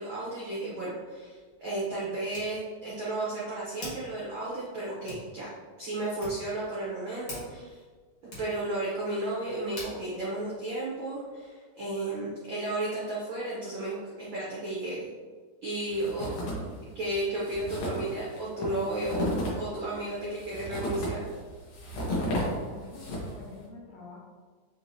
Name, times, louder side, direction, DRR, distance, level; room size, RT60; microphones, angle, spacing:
voice 1, 0.0-5.5 5.8-7.8 8.2-15.1 15.6-16.4 16.9-19.3 19.5-21.3, right 2 dB, 80° right, -7 dB, 1.0 m, -33 dB
Hands, 0.7-11.5, left 1 dB, 40° left, 1.6 m, -49 dB
sound 1, 15.9-16.8 17.1-17.2 17.4-23.5, equal, 90° left, 2.6 m, -33 dB
voice 2, 22.0-24.2, left 3 dB, 70° left, -3 dB, 1.9 m, -46 dB
6.3 x 3.0 x 2.7 m, 1.5 s
omnidirectional pair, 3.5 m